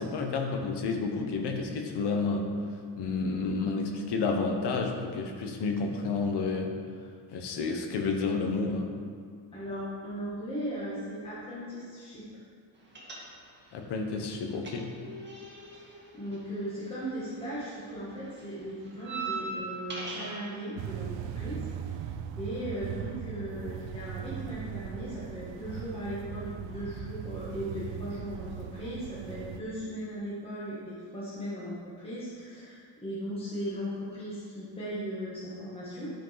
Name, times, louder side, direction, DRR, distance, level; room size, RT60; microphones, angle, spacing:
voice 1, 0.0-2.5 3.0-6.7 7.3-8.9 13.7-14.9, left 4 dB, 65° left, 2 dB, 1.4 m, -30 dB
voice 2, 9.5-12.2 15.7-22.1 22.4-36.1, equal, 10° left, -9 dB, 1.9 m, -37 dB
sound 1, 12.9-13.7 14.0-17.4 17.6-20.5, right 3 dB, 25° right, 1.8 m, -40 dB
sound 2, 20.8-29.6, right 9 dB, 85° right, 0.7 m, -39 dB
12.5 x 5.2 x 6.0 m, 2.1 s
cardioid pair, 170°, 44 cm